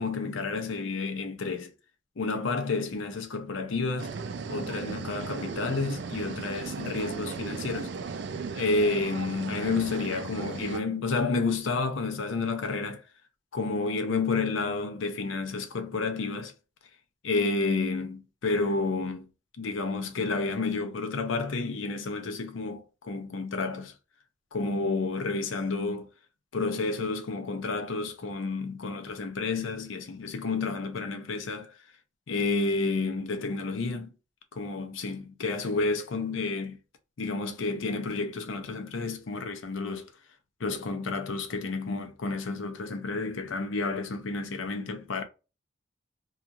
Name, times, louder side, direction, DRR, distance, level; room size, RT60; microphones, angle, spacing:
voice 1, 0.0-1.7 2.2-4.1 4.5-7.9 8.5-13.0 13.5-16.5 17.2-19.3 19.6-23.9 24.5-26.1 26.5-31.7 32.3-34.1 34.5-36.8 37.2-40.1 40.6-45.2, left 3 dB, 75° left, 0.6 m, -30 dB
sound 1, 4.0-10.8, right 5 dB, 60° right, 0.3 m, -36 dB
2.8 x 2.4 x 2.4 m
head